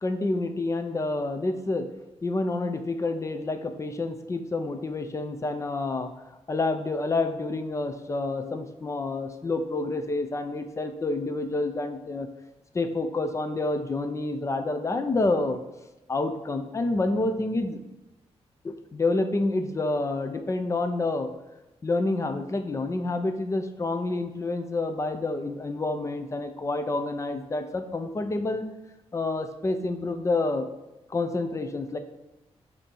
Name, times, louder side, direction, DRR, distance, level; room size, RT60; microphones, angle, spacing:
voice 1, 0.0-1.9 2.2-6.1 6.5-12.3 12.7-15.6 16.1-17.8 18.6-21.3 21.8-28.6 29.1-30.7 31.1-32.0, left 2 dB, 25° left, 7 dB, 0.5 m, -28 dB
7.2 x 2.8 x 5.3 m, 0.99 s
wide cardioid pair, 125°, 11 cm